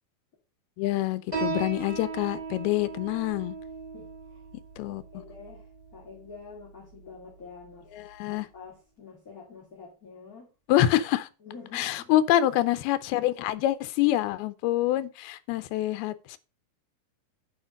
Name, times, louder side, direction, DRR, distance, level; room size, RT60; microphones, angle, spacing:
voice 1, 0.8-3.6 4.8-5.0 7.9-8.5 10.7-11.3 11.7-16.4, left 14 dB, 85° left, 2.6 m, -26 dB
Piano, 1.3-8.4, right 4 dB, 10° right, 2.9 m, -38 dB
voice 2, 3.9-4.4 4.9-7.9 8.3-10.5 11.4-12.1, left 5 dB, 25° left, 2.3 m, -47 dB
9.6 x 5.1 x 5.2 m
omnidirectional pair, 4.4 m